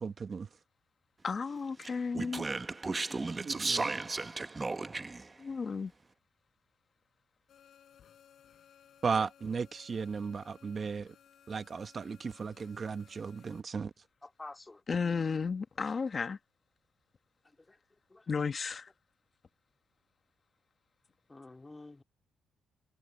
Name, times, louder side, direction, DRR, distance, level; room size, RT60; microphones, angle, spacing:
voice 1, 0.0-0.5 3.3-4.0 9.0-11.1 11.5-13.9, right 5 dB, 40° right, 1.2 m, -35 dB
voice 2, 1.2-2.5 5.4-5.9 14.9-16.4 18.3-18.9, left 5 dB, 40° left, 1.1 m, -33 dB
Speech, 1.8-5.3, right 3 dB, 25° right, 0.9 m, -34 dB
sound 1, 7.5-13.6, left 9 dB, 65° left, 4.8 m, -61 dB
voice 3, 14.2-14.8 17.7-17.8 18.1-18.2 21.3-22.0, left 2 dB, 20° left, 2.7 m, -49 dB
cardioid pair, 90°, 0 cm